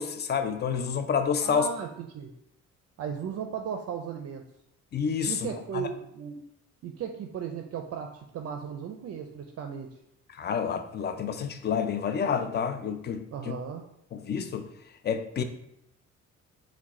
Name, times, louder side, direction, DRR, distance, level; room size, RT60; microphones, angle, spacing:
voice 1, 0.0-1.7 4.9-5.9 10.3-13.2 14.1-14.7 15.0-15.4, left 7 dB, 35° left, 9 dB, 0.4 m, -29 dB
voice 2, 1.4-2.3 3.0-4.4 5.3-6.4 6.8-9.9 13.3-13.8, right 7 dB, 55° right, 4 dB, 0.5 m, -36 dB
4.6 x 2.2 x 4.1 m, 0.80 s
cardioid pair, 90°, 30 cm